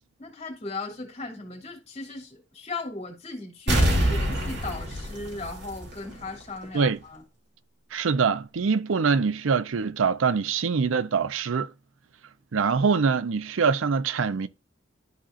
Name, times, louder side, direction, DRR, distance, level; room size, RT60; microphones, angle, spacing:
voice 1, 0.2-7.2, left 3 dB, 35° left, 2.5 m, -37 dB
sound 1, 3.7-6.3 6.6-6.7, equal, 60° right, 2.7 m, -25 dB
voice 2, 7.9-11.7 12.5-14.5, right 5 dB, 80° right, 0.5 m, -24 dB
13.0 x 4.3 x 2.4 m
head